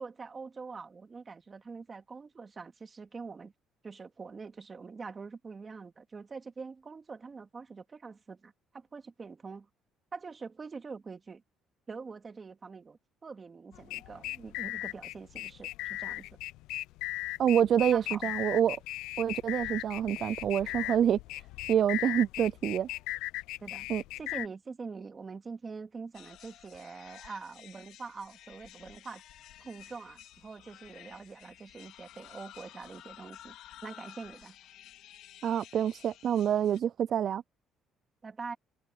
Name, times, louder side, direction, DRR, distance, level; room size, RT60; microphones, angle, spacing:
voice 1, 0.0-3.5 3.8-9.7 10.1-11.4 11.9-16.3 17.9-18.3 23.6-23.9 24.2-29.2 29.6-33.5 33.8-34.6 38.2-38.6, right 4 dB, 25° right, 2.4 m, -44 dB
sound 1, 13.7-24.5, left 18 dB, 90° left, 0.5 m, -37 dB
voice 2, 17.4-18.8 19.2-21.2 21.7-22.9 23.9-24.0 35.4-37.4, right 9 dB, 50° right, 0.3 m, -27 dB
sound 2, 26.1-36.8, left 13 dB, 70° left, 4.0 m, -53 dB
cardioid pair, 135°, 0 cm